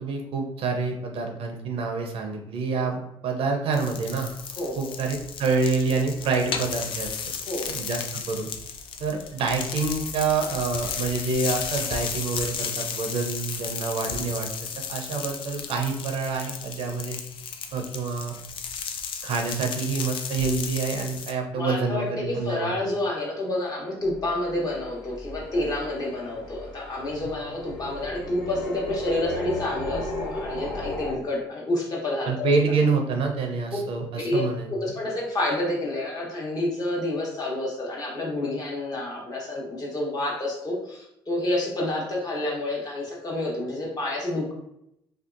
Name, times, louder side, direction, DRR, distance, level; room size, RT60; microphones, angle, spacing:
voice 1, 0.0-4.3 4.8-7.1 7.7-8.5 9.0-17.2 17.7-18.4 19.2-22.7 32.3-34.7, right 4 dB, 65° right, 3 dB, 0.6 m, -27 dB
sound 1, 3.7-21.3, left 6 dB, 55° left, 0.4 m, -34 dB
voice 2, 4.6-4.9 7.5-7.7 21.5-32.5 34.1-34.4 34.7-44.5, left 1 dB, 40° left, -4 dB, 1.0 m, -29 dB
sound 2, 24.0-31.1, left 2 dB, 80° left, 0.9 m, -36 dB
2.6 x 2.2 x 2.4 m, 0.79 s
supercardioid pair, 75°, 10 cm